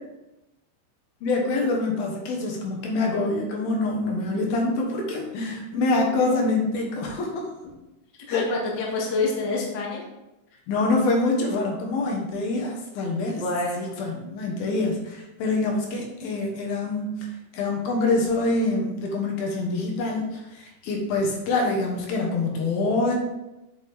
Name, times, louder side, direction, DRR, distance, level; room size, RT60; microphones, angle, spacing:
voice 1, 1.2-7.5 8.3-8.5 10.7-13.4 13.8-23.2, left 2 dB, 70° left, 0 dB, 2.7 m, -25 dB
voice 2, 8.3-10.0 13.4-13.8, left 3 dB, 50° left, -3 dB, 1.2 m, -26 dB
8.8 x 7.0 x 3.4 m, 0.96 s
omnidirectional pair, 4.9 m